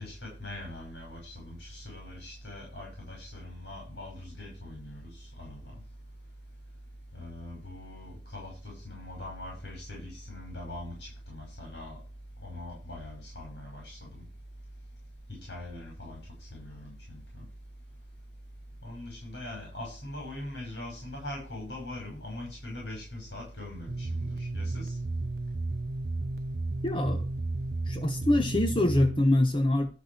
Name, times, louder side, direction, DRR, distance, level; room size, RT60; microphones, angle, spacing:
voice 1, 0.0-5.7 7.1-12.0 12.4-14.3 15.3-17.2 18.8-25.0, left 1 dB, 75° left, 6.1 m, -42 dB
sound 1, 23.9-29.2, right 2 dB, 55° right, 0.6 m, -33 dB
voice 2, 26.8-27.3 27.9-29.9, left 1 dB, 30° left, 1.0 m, -25 dB
12.5 x 6.1 x 8.1 m
head